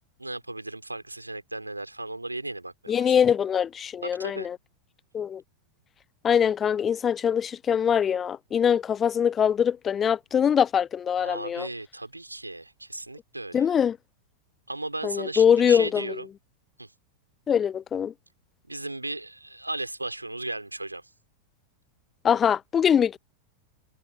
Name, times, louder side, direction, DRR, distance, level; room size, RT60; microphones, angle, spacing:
voice 1, 0.2-3.1 4.0-4.5 11.2-13.7 14.7-16.3 16.8-16.9 18.7-21.1, right 2 dB, 85° right, 3.8 m, -36 dB
voice 2, 2.9-4.6 5.1-5.4 6.2-11.7 13.5-14.0 15.0-16.2 17.5-18.1 22.2-23.2, left 8 dB, 25° left, 0.5 m, -23 dB
figure-of-eight pair, 90°, 0 cm